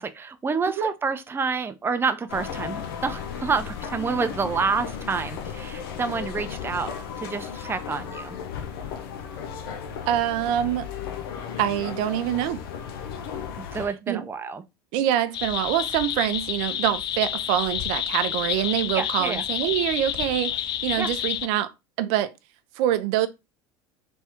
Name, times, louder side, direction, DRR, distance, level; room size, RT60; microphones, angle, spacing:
voice 1, 0.0-8.4 13.7-14.6 18.9-19.4 21.0-21.1, right 5 dB, 20° right, 0.6 m, -28 dB
sound 1, 2.3-13.9, left 7 dB, 85° left, 0.7 m, -35 dB
voice 2, 10.1-10.9 11.6-12.6 14.1-14.2 14.9-21.7 22.0-22.3 22.8-23.3, right 12 dB, 70° right, 0.6 m, -25 dB
sound 2, 15.3-21.5, left 11 dB, 40° left, 0.3 m, -29 dB
3.5 x 3.2 x 4.3 m
supercardioid pair, 100°, 12 cm